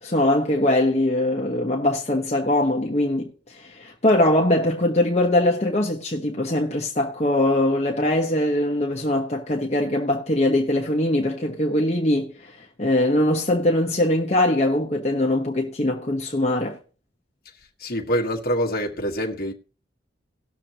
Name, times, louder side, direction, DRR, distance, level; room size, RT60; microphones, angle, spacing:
voice 1, 0.0-16.8, left 1 dB, 35° left, 1.1 m, -22 dB
voice 2, 17.8-19.5, equal, 50° left, 1.4 m, -25 dB
18.5 x 6.6 x 2.9 m
head